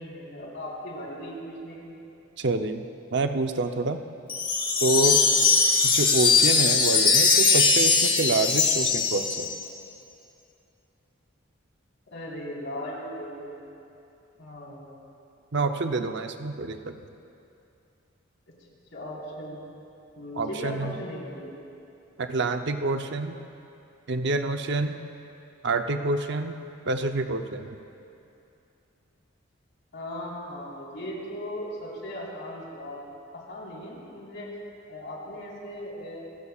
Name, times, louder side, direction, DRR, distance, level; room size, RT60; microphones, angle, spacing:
voice 1, 0.0-2.0 12.1-13.7 14.4-15.0 18.9-19.6 20.2-21.5 29.9-33.1 33.3-34.5 34.9-36.2, equal, 65° left, -5 dB, 4.3 m, -38 dB
voice 2, 2.4-2.8 3.1-4.0 4.8-5.3 5.9-9.5 15.5-17.0 20.3-20.9 22.2-23.4 24.1-25.0 25.6-26.6 26.9-27.8, right 3 dB, 60° right, 7 dB, 0.7 m, -27 dB
Wind chime, 4.3-9.7, left 5 dB, 25° left, 1.6 m, -21 dB
28.0 x 15.5 x 2.4 m, 2.7 s
head